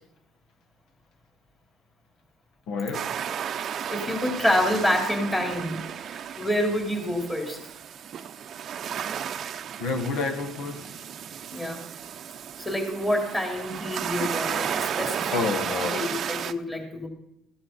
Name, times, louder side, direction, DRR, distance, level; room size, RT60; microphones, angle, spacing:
voice 1, 2.7-3.1 9.8-11.0 15.3-16.1, left 4 dB, 70° left, 1.5 m, -29 dB
sound 1, 2.9-16.5, right 8 dB, 45° right, 0.6 m, -33 dB
voice 2, 3.9-7.6 11.5-11.8 12.6-15.4 15.9-17.1, left 1 dB, 15° left, 3.6 m, -27 dB
15.5 x 10.0 x 4.1 m
cardioid pair, 105°, 0 cm